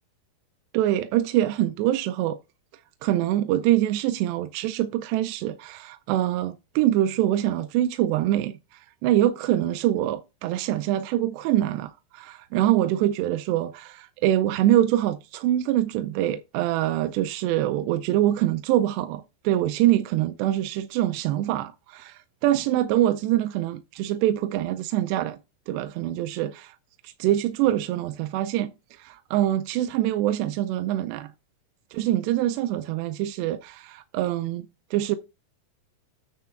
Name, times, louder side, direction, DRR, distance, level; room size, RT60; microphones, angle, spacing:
voice 1, 0.7-2.4 3.0-25.4 25.7-26.8 27.0-31.3 31.9-35.2, right 13 dB, 85° right, 2.7 m, -24 dB
9.3 x 3.3 x 6.8 m
omnidirectional pair, 4.8 m